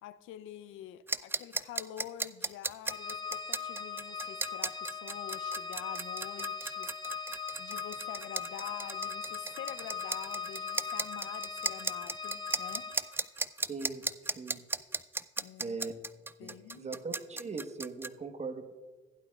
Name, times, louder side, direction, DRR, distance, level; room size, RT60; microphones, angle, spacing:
voice 1, 0.0-7.3 7.6-12.9 15.4-15.8 16.4-16.9, left 12 dB, 90° left, 14 dB, 0.5 m, -47 dB
sound 1, 1.1-18.1, right 3 dB, 10° right, 0.3 m, -36 dB
Organ, 2.9-13.3, left 5 dB, 20° left, 0.7 m, -40 dB
voice 2, 13.7-14.6 15.6-15.9 16.4-18.7, right 4 dB, 35° right, 7 dB, 1.1 m, -40 dB
15.5 x 11.0 x 2.3 m, 1.3 s
cardioid pair, 90°, 20 cm